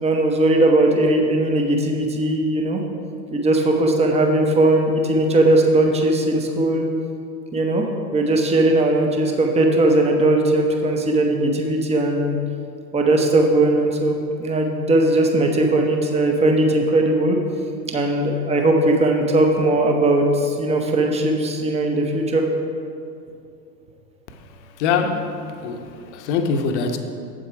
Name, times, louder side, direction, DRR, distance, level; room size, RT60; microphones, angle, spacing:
voice 1, 0.0-2.8 3.3-6.9 7.5-7.8 8.1-12.4 12.9-17.4 17.9-22.4, right 2 dB, 15° right, 2 dB, 0.8 m, -19 dB
voice 2, 24.6-27.0, left 5 dB, 45° left, 6 dB, 0.9 m, -24 dB
7.9 x 7.6 x 4.7 m, 2.4 s
figure-of-eight pair, 90°, 50 cm